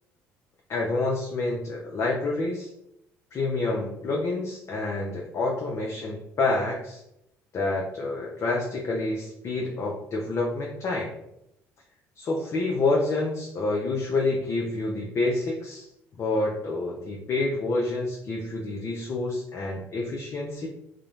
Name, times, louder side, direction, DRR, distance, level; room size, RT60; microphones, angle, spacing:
voice 1, 0.7-2.7 3.3-7.0 7.5-11.1 12.2-15.9 16.2-20.7, left 2 dB, 45° left, -1 dB, 0.5 m, -28 dB
2.4 x 2.0 x 3.0 m, 0.81 s
hypercardioid pair, 65°, 7 cm